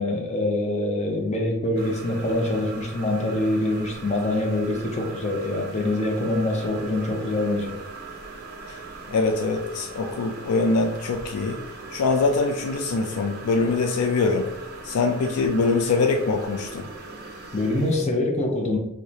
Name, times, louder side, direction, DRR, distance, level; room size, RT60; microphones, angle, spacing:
voice 1, 0.0-7.7 17.5-18.8, left 1 dB, 30° left, 1 dB, 0.5 m, -25 dB
sound 1, 1.8-18.1, right 3 dB, 45° right, 0.7 m, -40 dB
voice 2, 9.1-11.6 11.9-14.5 14.8-16.9, left 3 dB, 85° left, 3 dB, 0.4 m, -23 dB
4.7 x 2.1 x 2.7 m, 0.87 s
head